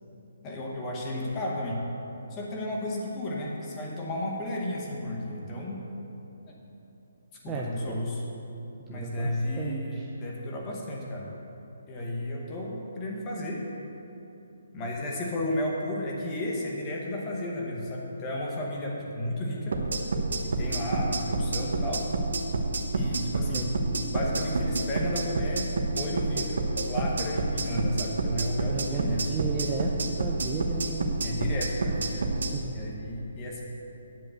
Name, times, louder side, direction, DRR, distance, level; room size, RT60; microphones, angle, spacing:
voice 1, 0.4-1.8 2.3-5.8 6.5-6.6 7.4-8.2 8.9-11.3 11.9-13.6 14.7-19.8 20.4-22.1 22.9-23.7 24.1-29.3 31.2-32.3 32.7-33.6, left 1 dB, 15° left, -2 dB, 1.0 m, -33 dB
voice 2, 7.5-8.4 8.8-10.1 23.5-23.7 28.7-31.1 32.5-32.7, right 4 dB, 10° right, -2 dB, 0.4 m, -35 dB
sound 1, 19.7-32.5, right 3 dB, 65° right, 1.1 m, -28 dB
10.0 x 5.2 x 7.8 m, 3.0 s
hypercardioid pair, 175°, 0 cm